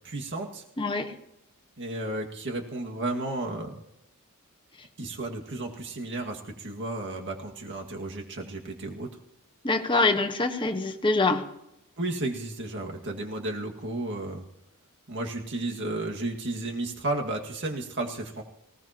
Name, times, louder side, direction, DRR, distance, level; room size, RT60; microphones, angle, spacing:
voice 1, 0.0-0.6 1.8-3.8 5.0-9.1 12.0-14.4 15.1-18.4, right 2 dB, 55° right, 1 dB, 2.0 m, -33 dB
voice 2, 0.8-1.1 9.6-11.4, left 3 dB, 20° left, 5 dB, 1.4 m, -25 dB
20.0 x 18.0 x 3.0 m, 0.84 s
head